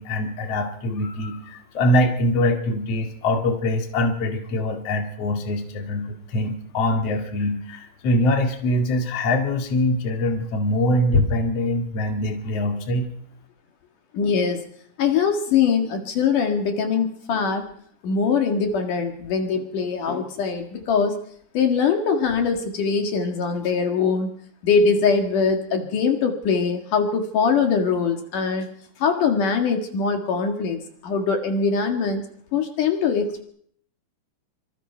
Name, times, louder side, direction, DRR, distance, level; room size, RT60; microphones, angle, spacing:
voice 1, 0.0-13.1, left 1 dB, 50° left, 3 dB, 3.0 m, -23 dB
voice 2, 14.1-14.6 15.0-17.6 18.0-21.2 21.5-24.3 24.6-28.7 29.0-32.2 32.5-33.4, left 5 dB, 70° left, 4 dB, 3.4 m, -22 dB
26.0 x 25.5 x 4.5 m, 0.63 s
omnidirectional pair, 3.9 m